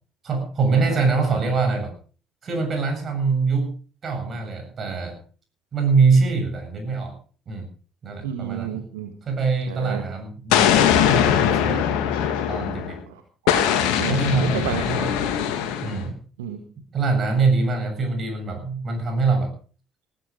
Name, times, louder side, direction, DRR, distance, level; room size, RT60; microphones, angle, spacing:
voice 1, 0.2-1.9 2.4-3.7 4.0-5.2 5.7-7.2 7.5-7.7 8.0-8.8 9.2-10.8 11.1-12.0 12.5-13.0 14.1-15.1 15.8-16.1 16.9-19.5, right 4 dB, 40° right, 6 dB, 7.4 m, -23 dB
voice 2, 8.2-9.1 9.7-10.0 13.1-14.9 16.4-16.6, right 9 dB, 70° right, 6 dB, 1.6 m, -32 dB
Explosion, 10.5-13.0 13.5-16.0, left 9 dB, 65° left, 2.4 m, -21 dB
19.5 x 13.0 x 5.0 m, 0.40 s
figure-of-eight pair, 50°, 0 cm